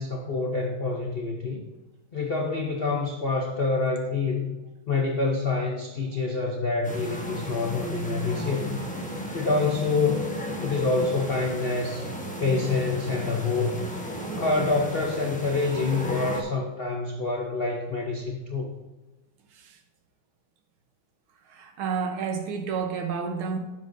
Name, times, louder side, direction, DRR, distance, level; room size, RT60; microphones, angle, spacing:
voice 1, 0.0-1.6 2.1-4.5 4.9-8.8 9.3-10.3 10.6-12.1 12.4-13.8 14.3-18.7, left 3 dB, 65° left, 1 dB, 0.5 m, -27 dB
sound 1, 6.8-16.4, equal, 10° left, 0.3 m, -34 dB
voice 2, 21.5-23.6, right 6 dB, 85° right, 6 dB, 1.8 m, -30 dB
10.5 x 7.1 x 2.7 m, 1.2 s
omnidirectional pair, 2.3 m